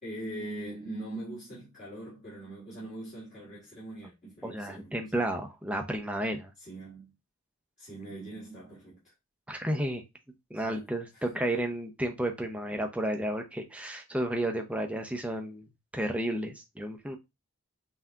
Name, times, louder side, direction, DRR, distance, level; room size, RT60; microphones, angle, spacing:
voice 1, 0.0-5.3 6.6-7.1 7.8-9.0 10.6-11.3, right 1 dB, 35° left, 1.8 m, -42 dB
voice 2, 4.4-6.5 9.5-10.0 10.5-15.7 15.9-17.2, right 1 dB, 5° right, 0.5 m, -32 dB
5.6 x 2.7 x 2.3 m
head